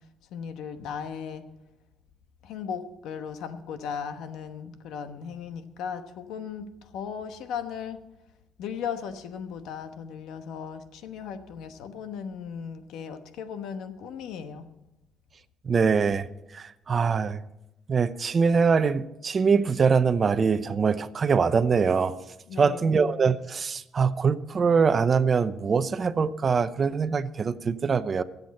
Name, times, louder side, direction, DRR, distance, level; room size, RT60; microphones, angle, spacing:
voice 1, 0.3-1.4 2.4-8.0 8.6-14.7 22.5-23.0, left 7 dB, 90° left, 9 dB, 1.1 m, -37 dB
voice 2, 15.6-16.3 16.5-17.4 17.9-22.1 22.6-28.2, right 5 dB, 40° right, 12 dB, 0.8 m, -23 dB
23.5 x 8.2 x 4.3 m, 0.90 s
cardioid pair, 90°, 0 cm